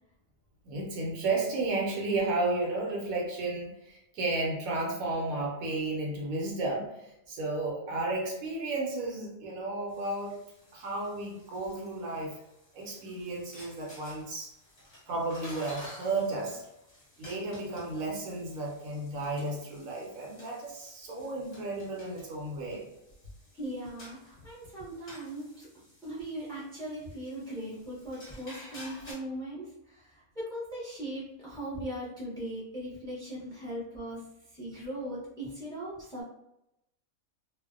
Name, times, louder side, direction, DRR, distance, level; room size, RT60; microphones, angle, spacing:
voice 1, 0.6-10.3 10.7-12.4 12.7-14.5 15.1-16.6 17.2-22.9, right 2 dB, 80° right, -1 dB, 1.1 m, -33 dB
sound 1, 9.9-29.1, left 1 dB, 35° left, 0.9 m, -53 dB
voice 2, 23.5-25.7 26.0-29.7 29.9-30.0 30.4-34.2 34.6-36.2, right 1 dB, 5° left, -7 dB, 0.5 m, -39 dB
2.5 x 2.0 x 2.4 m, 0.86 s
omnidirectional pair, 1.5 m